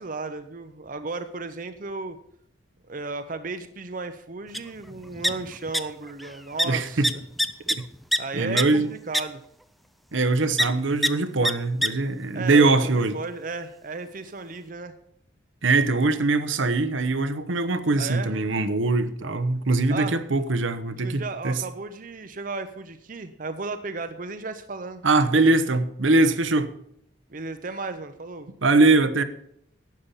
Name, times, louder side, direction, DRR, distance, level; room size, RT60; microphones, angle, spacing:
voice 1, 0.0-2.2 2.9-7.1 8.2-9.4 12.3-14.9 18.0-18.3 19.9-20.2 21.0-25.0 27.3-28.5, right 3 dB, 40° right, 0.7 m, -34 dB
sound 1, 4.5-4.6 4.9-5.8 6.1-6.3 6.6-6.7 7.0-8.2 8.6-8.7 9.1-9.2 10.6-10.7 11.0-11.1 11.4-11.5 11.8-11.9, equal, ahead, 0.4 m, -23 dB
voice 2, 6.6-7.1 7.7-7.8 8.3-8.9 10.1-13.2 15.6-21.6 25.0-26.7 28.6-29.2, right 3 dB, 75° right, 0.9 m, -22 dB
12.0 x 8.6 x 5.6 m
head